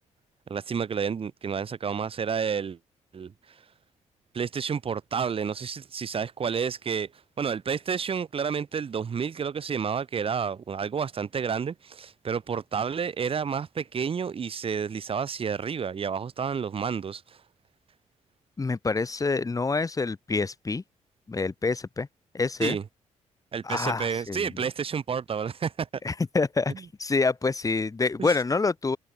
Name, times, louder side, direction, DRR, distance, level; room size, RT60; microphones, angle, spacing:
voice 1, 0.5-2.8 3.1-3.3 4.3-7.1 7.4-17.2 22.6-22.8 23.5-25.9 26.7-26.8 28.2-28.4, right 6 dB, 45° right, 6.0 m, -30 dB
voice 2, 18.6-20.8 21.3-22.1 22.3-22.8 23.6-24.6 26.0-29.0, left 3 dB, 25° left, 7.6 m, -27 dB
cardioid pair, 90°, 13 cm